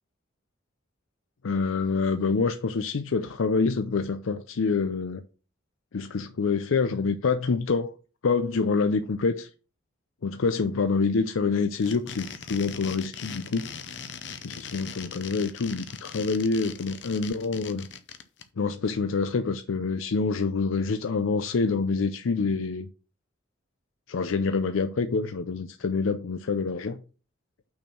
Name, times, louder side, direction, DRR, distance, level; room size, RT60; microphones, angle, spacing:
voice 1, 1.4-5.2 5.9-7.9 8.2-9.5 10.2-13.7 14.4-17.9 18.6-22.9 24.1-27.0, left 4 dB, 90° left, 0.5 m, -26 dB
sound 1, 11.7-18.4, left 6 dB, 65° left, 0.8 m, -40 dB
6.0 x 4.4 x 5.9 m
head